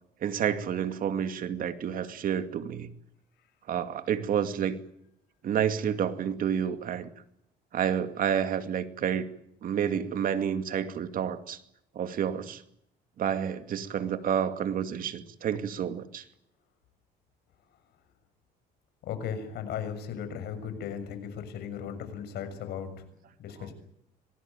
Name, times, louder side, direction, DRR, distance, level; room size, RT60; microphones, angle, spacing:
voice 1, 0.2-2.9 3.7-4.8 5.4-7.1 7.7-9.3 9.6-11.6 12.0-12.6 13.2-16.2, right 8 dB, 55° right, 9 dB, 2.5 m, -29 dB
voice 2, 19.0-22.9 23.4-23.7, left 8 dB, 75° left, 9 dB, 6.6 m, -36 dB
26.0 x 19.5 x 9.2 m, 0.78 s
cardioid pair, 110°, 17 cm